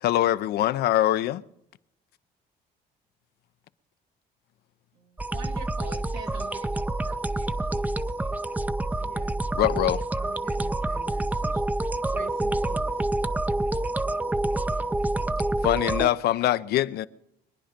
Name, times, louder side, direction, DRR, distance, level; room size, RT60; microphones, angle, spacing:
voice 1, 0.0-1.4 9.5-10.0 15.6-17.1, left 13 dB, 70° left, 0.6 m, -23 dB
voice 2, 4.9-8.3, right 4 dB, 90° right, 2.8 m, -45 dB
sound 1, 5.2-16.1, right 2 dB, 10° right, 0.5 m, -27 dB
voice 3, 9.0-9.4 10.2-11.6 12.1-13.0, right 9 dB, 55° right, 1.0 m, -46 dB
23.5 x 10.0 x 5.1 m
cardioid pair, 110°, 17 cm